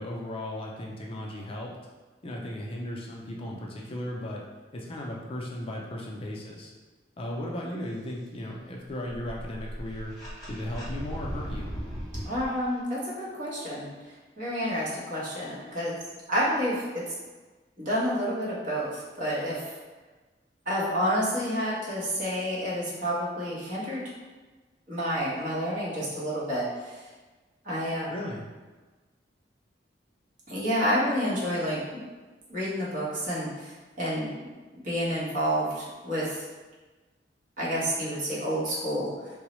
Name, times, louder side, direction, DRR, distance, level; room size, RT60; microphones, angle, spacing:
voice 1, 0.0-1.7 2.2-4.4 4.7-6.7 7.2-10.1 10.5-11.7 28.1-28.5, left 1 dB, 30° left, -2 dB, 0.4 m, -36 dB
sound 1, 8.9-12.5, equal, ahead, 1.3 m, -37 dB
voice 2, 12.2-13.8 14.4-15.9 16.3-17.1 17.8-19.7 20.7-24.0 24.9-27.0 27.6-28.1 30.5-32.0 32.5-34.3 34.8-36.4 37.6-39.1, equal, 50° right, -7 dB, 1.0 m, -29 dB
3.7 x 2.0 x 3.0 m, 1.3 s
head